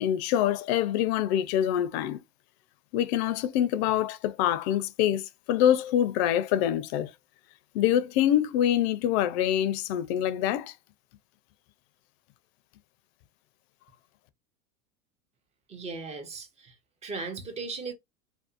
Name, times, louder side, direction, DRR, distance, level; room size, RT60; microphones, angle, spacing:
voice 1, 0.0-2.2 2.9-7.1 7.7-10.7, left 11 dB, 45° left, 0.4 m, -25 dB
voice 2, 15.7-16.7 17.0-17.9, right 4 dB, 15° right, 0.4 m, -37 dB
2.5 x 2.2 x 2.4 m
hypercardioid pair, 95°, 47 cm